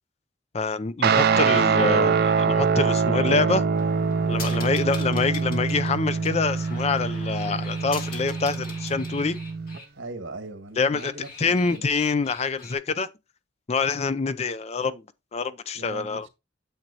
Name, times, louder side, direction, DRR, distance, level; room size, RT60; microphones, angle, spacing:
voice 1, 0.5-3.7 4.2-9.4 10.8-11.1 11.4-13.1 13.7-15.0 15.3-16.3, left 4 dB, 35° left, 0.4 m, -26 dB
Guitar, 1.0-9.8, right 5 dB, 55° right, 0.5 m, -24 dB
sound 1, 3.7-9.9 10.8-12.7, left 3 dB, 50° left, 1.9 m, -42 dB
voice 2, 4.3-4.8 9.9-11.9 15.7-16.3, right 2 dB, 80° right, 1.6 m, -39 dB
9.0 x 7.2 x 2.8 m
head